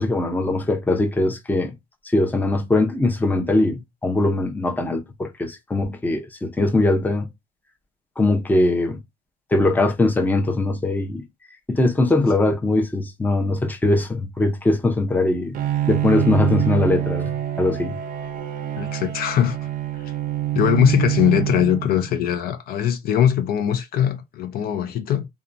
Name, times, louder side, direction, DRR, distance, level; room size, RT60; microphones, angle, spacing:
voice 1, 0.0-1.7 2.0-7.3 8.2-9.0 9.5-11.2 11.7-15.5 15.9-18.0, left 2 dB, 10° left, 0.6 m, -21 dB
Bowed string instrument, 15.5-22.2, right 13 dB, 55° right, 0.5 m, -25 dB
voice 2, 18.8-19.6 20.5-25.3, left 10 dB, 65° left, 0.5 m, -21 dB
2.7 x 2.2 x 2.4 m
cardioid pair, 110°, 17 cm